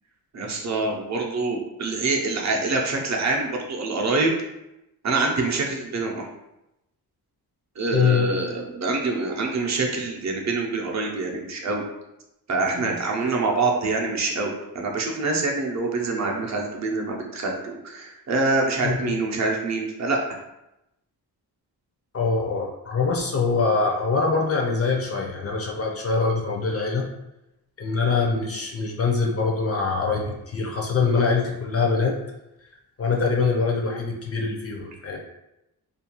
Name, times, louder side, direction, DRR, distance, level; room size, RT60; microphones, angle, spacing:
voice 1, 0.3-4.3 5.0-6.3 7.8-11.8 12.5-20.4, right 3 dB, 45° right, 0 dB, 0.6 m, -25 dB
voice 2, 7.9-8.3 12.7-13.0 18.8-19.2 22.1-27.1 27.8-32.2 33.0-35.2, left 4 dB, 40° left, 0 dB, 0.4 m, -24 dB
2.4 x 2.3 x 2.9 m, 0.90 s
wide cardioid pair, 115°, 39 cm